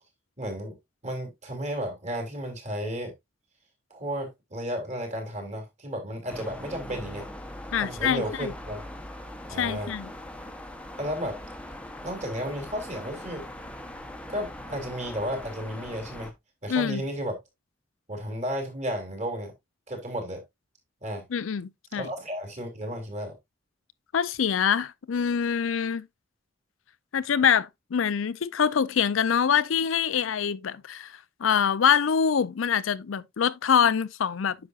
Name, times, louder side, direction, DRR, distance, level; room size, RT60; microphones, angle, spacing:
voice 1, 0.4-0.8 1.0-3.1 3.9-7.3 7.8-8.8 9.5-9.9 11.0-11.4 12.0-13.4 14.3-16.3 16.6-17.4 18.1-19.5 19.9-20.4 21.0-21.2 22.0-23.3, equal, 35° right, 2.9 m, -33 dB
sound 1, 6.3-16.3, left 1 dB, 5° left, 0.9 m, -41 dB
voice 2, 7.7-8.5 9.6-10.1 16.7-17.0 21.3-22.1 24.1-26.1 27.1-31.1 31.4-34.6, left 7 dB, 85° left, 0.5 m, -25 dB
9.6 x 6.0 x 2.4 m
head